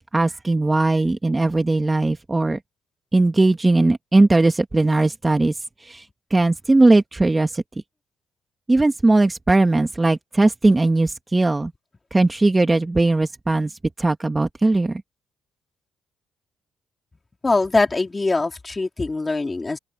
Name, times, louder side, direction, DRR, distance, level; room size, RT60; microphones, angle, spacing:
voice 1, 0.1-2.6 3.1-5.5 5.8-6.0 6.3-7.6 8.7-11.7 12.1-13.7 14.0-15.0, right 2 dB, 20° right, 1.7 m, -18 dB
voice 2, 17.4-19.8, left 3 dB, 25° left, 4.1 m, -22 dB
open air
cardioid pair, 90°, 0 cm